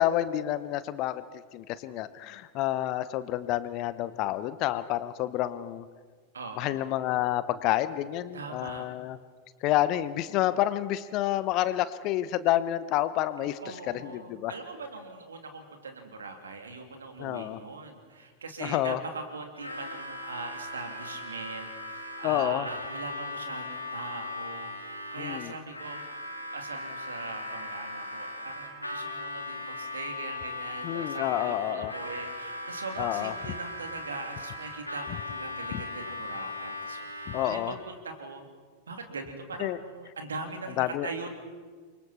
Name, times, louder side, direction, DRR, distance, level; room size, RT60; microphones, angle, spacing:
voice 1, 0.0-5.9 6.6-9.2 9.6-14.5 17.2-17.6 18.6-19.0 22.2-22.7 25.2-25.5 30.8-31.9 33.0-33.3 37.3-37.7 39.6-39.8 40.8-41.1, left 14 dB, 40° left, 15 dB, 0.9 m, -29 dB
voice 2, 6.3-6.8 8.3-8.9 13.4-26.2 26.5-38.4 38.9-41.3, right 3 dB, 70° right, 5 dB, 2.8 m, -41 dB
Harmonica, 19.6-37.8, left 2 dB, 90° left, 2.9 m, -38 dB
28.5 x 24.0 x 4.3 m, 1.5 s
figure-of-eight pair, 90°, 0 cm